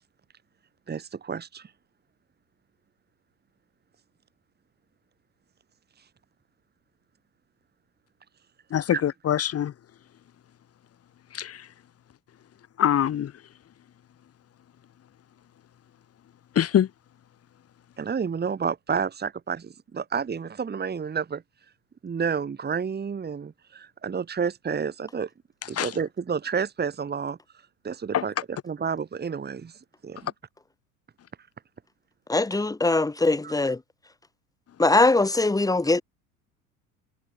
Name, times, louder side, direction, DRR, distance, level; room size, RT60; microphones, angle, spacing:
voice 1, 0.9-1.7 8.9-9.0 18.0-21.4 22.0-25.3 25.7-27.4 27.8-30.3 33.4-33.5, right 6 dB, 20° right, 3.0 m, -30 dB
voice 2, 8.7-9.7 11.4-11.5 12.8-13.3 16.6-16.9 25.8-25.9 28.1-28.2, left 10 dB, 30° left, 2.8 m, -23 dB
voice 3, 32.3-33.8 34.8-36.0, left 2 dB, 10° left, 2.0 m, -21 dB
figure-of-eight pair, 70°, 45 cm